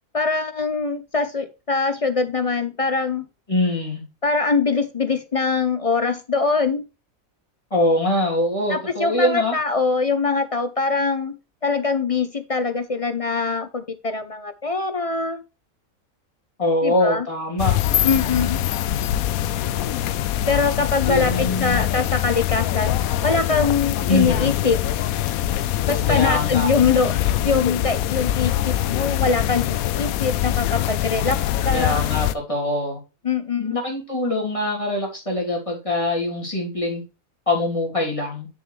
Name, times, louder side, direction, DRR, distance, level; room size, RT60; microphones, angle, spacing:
voice 1, 0.1-3.2 4.2-6.8 8.7-11.3 11.6-15.4 16.8-17.3 18.0-18.6 20.5-22.9 23.2-24.8 25.9-27.1 27.4-32.0 33.2-33.8, left 4 dB, 45° left, 9 dB, 0.4 m, -23 dB
voice 2, 3.5-4.0 7.7-9.5 16.6-17.8 21.0-21.8 24.1-24.5 26.1-26.7 31.7-33.0 33.6-37.0 37.5-38.5, left 1 dB, 25° left, -1 dB, 3.1 m, -23 dB
sound 1, 17.6-32.3, left 12 dB, 90° left, 1.0 m, -23 dB
8.4 x 6.9 x 3.2 m, 0.30 s
omnidirectional pair, 1.4 m